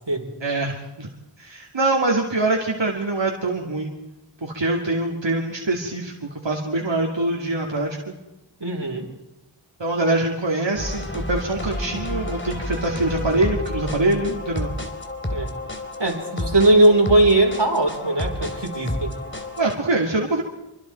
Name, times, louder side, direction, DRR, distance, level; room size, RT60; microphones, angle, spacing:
voice 1, 0.4-1.1 1.4-3.9 4.4-8.2 9.8-14.7 19.6-20.4, right 2 dB, 90° right, -1 dB, 2.7 m, -24 dB
voice 2, 8.6-9.1 15.3-15.5 16.0-19.1, right 1 dB, 65° right, 1 dB, 4.4 m, -19 dB
sound 1, 10.8-19.7, left 1 dB, 25° left, 3.5 m, -30 dB
27.0 x 24.5 x 4.5 m, 0.92 s
wide cardioid pair, 45°, 43 cm